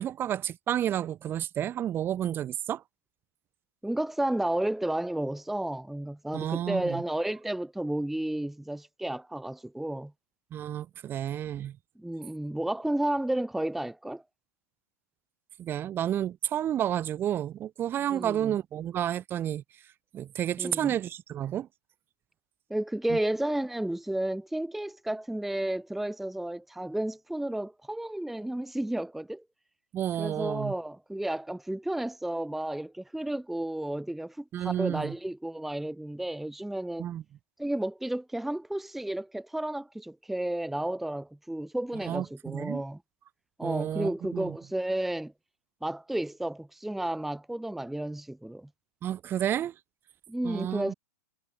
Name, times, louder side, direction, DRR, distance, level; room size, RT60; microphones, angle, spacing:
voice 1, 0.0-2.8 6.3-7.0 10.5-11.8 15.6-19.6 20.1-21.7 23.1-23.2 29.9-30.7 34.5-35.1 37.0-37.2 42.0-42.8 43.6-44.6 49.0-49.7 50.4-50.9, right 11 dB, 25° right, 1.2 m, -31 dB
voice 2, 3.8-10.1 12.0-14.2 18.1-18.5 20.6-20.9 22.7-29.4 30.2-37.1 37.6-43.0 43.6-45.3 45.8-48.7 50.3-50.9, right 1 dB, ahead, 1.0 m, -32 dB
hypercardioid pair, 120°, 9 cm